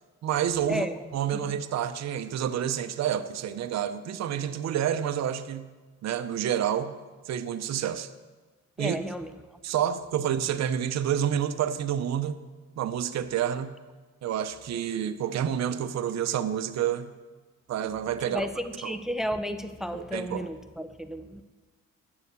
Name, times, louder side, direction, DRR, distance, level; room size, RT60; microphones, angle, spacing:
voice 1, 0.2-0.9 1.1-5.7 6.0-6.9 7.3-8.1 8.8-9.0 9.6-12.4 12.8-13.7 14.2-17.1 17.7-18.5 18.8-19.0 19.9-20.5, right 9 dB, 60° right, 9 dB, 0.7 m, -29 dB
voice 2, 8.8-9.6 18.2-21.4, equal, ahead, 10 dB, 0.6 m, -33 dB
9.4 x 7.0 x 6.8 m, 1.3 s
cardioid pair, 90°, 30 cm